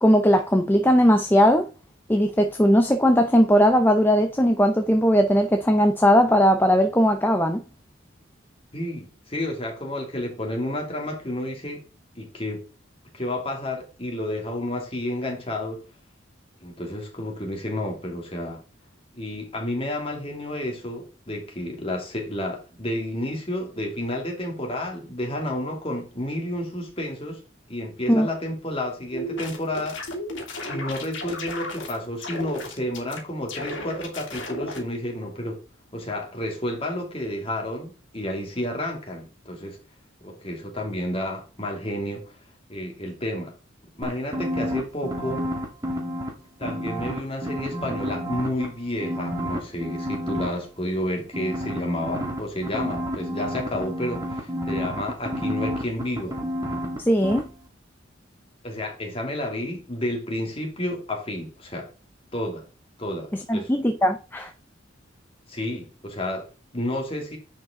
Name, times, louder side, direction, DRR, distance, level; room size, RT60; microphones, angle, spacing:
voice 1, 0.0-1.7 2.1-7.6 28.1-28.3 57.1-57.4 63.5-64.5, equal, 10° left, 0.6 m, -19 dB
voice 2, 8.7-11.8 12.2-12.7 13.1-15.8 16.6-18.6 19.1-27.4 27.7-30.0 30.7-35.6 35.9-39.8 40.2-42.3 42.7-43.6 44.0-45.5 46.6-56.4 58.6-61.9 62.3-62.6 63.0-63.7 65.5-67.4, left 1 dB, 30° left, 2.5 m, -31 dB
sound 1, 29.1-32.0 32.2-33.2 33.5-34.8, left 1 dB, 70° left, 2.6 m, -34 dB
sound 2, 44.0-46.3 46.6-48.7 49.0-50.5 51.3-57.0 57.2-57.4, equal, 20° right, 1.9 m, -30 dB
10.0 x 5.1 x 3.7 m
head